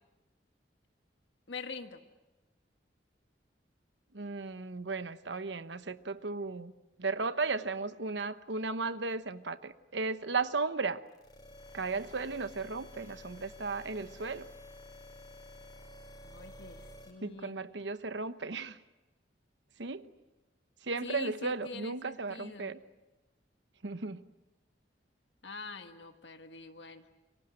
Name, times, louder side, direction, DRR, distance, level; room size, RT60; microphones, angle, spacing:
voice 1, 1.5-2.0 16.2-17.6 21.0-22.7 25.4-27.1, left 4 dB, 75° left, 6 dB, 1.6 m, -45 dB
voice 2, 4.1-6.7 7.0-11.0 11.7-14.5 17.2-18.8 19.8-20.1 20.8-22.8 23.8-24.2, right 4 dB, 75° right, 12 dB, 1.1 m, -35 dB
sound 1, 11.1-17.1, left 1 dB, 20° left, 4.6 m, -51 dB
30.0 x 24.5 x 7.7 m, 1.1 s
head